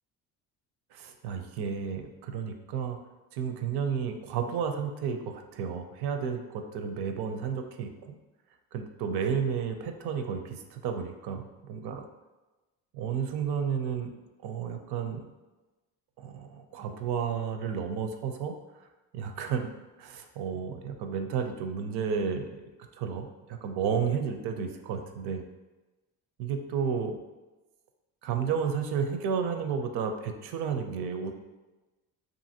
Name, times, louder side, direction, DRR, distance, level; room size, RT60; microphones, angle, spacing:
voice 1, 0.9-3.0 3.3-8.2 8.7-12.0 12.9-14.1 14.4-15.3 16.2-18.5 19.1-19.7 20.0-22.6 23.0-25.4 26.4-27.2 28.2-31.3, right 6 dB, 65° right, 6 dB, 0.5 m, -32 dB
2.7 x 2.6 x 2.7 m, 1.1 s
supercardioid pair, 75°, 42 cm